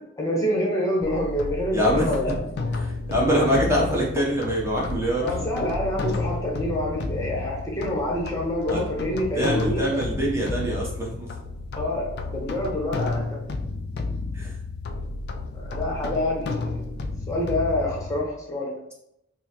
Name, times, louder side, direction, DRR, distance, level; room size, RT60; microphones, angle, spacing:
voice 1, 0.2-2.3 5.2-9.8 11.8-13.2 15.5-16.7 17.3-18.8, left 1 dB, 15° left, -3 dB, 0.8 m, -27 dB
sound 1, 1.0-18.2, left 3 dB, 55° left, 0.4 m, -32 dB
voice 2, 1.7-2.1 2.8-5.3 8.7-8.8 9.3-11.3 14.3-14.5, equal, 15° right, -4 dB, 0.8 m, -24 dB
5.4 x 2.0 x 2.9 m, 0.78 s
head